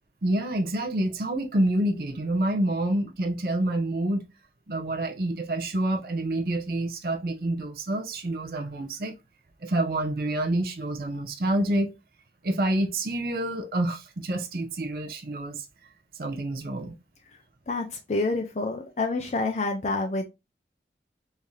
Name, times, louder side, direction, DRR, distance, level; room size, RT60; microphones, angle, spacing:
voice 1, 0.2-4.2 4.7-9.1 9.6-11.9 12.4-15.7 16.2-17.0, right 1 dB, 55° right, 0.6 m, -27 dB
voice 2, 17.7-20.2, left 3 dB, 40° left, 0.5 m, -28 dB
3.2 x 2.7 x 3.6 m
head